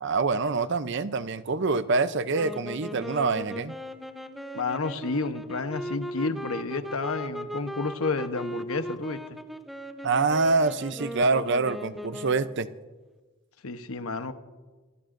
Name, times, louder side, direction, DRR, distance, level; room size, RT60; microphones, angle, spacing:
voice 1, 0.0-3.8 10.0-12.7, right 3 dB, 55° right, 13 dB, 0.6 m, -25 dB
sound 1, 2.3-12.7, equal, ahead, 0.7 m, -38 dB
voice 2, 4.5-9.4 13.6-14.3, left 3 dB, 75° left, 9 dB, 1.0 m, -31 dB
28.5 x 17.0 x 2.6 m, 1.3 s
head